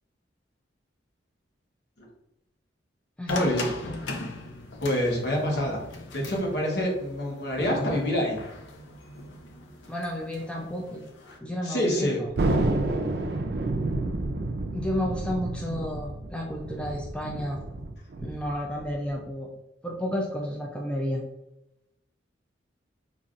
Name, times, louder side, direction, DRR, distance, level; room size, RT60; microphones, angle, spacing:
sound 1, 3.3-11.4, left 2 dB, 90° left, 0.6 m, -39 dB
voice 1, 3.3-3.7 4.8-5.8 6.1-8.4 11.6-12.2, left 1 dB, 60° left, -1 dB, 1.1 m, -26 dB
voice 2, 9.9-11.0 11.4-12.3 14.7-17.6 18.2-19.5 19.8-21.2, left 1 dB, 5° left, -1 dB, 0.4 m, -31 dB
Thunder, 12.4-19.2, right 2 dB, 60° right, 0.5 m, -29 dB
5.2 x 2.5 x 2.4 m, 0.90 s
head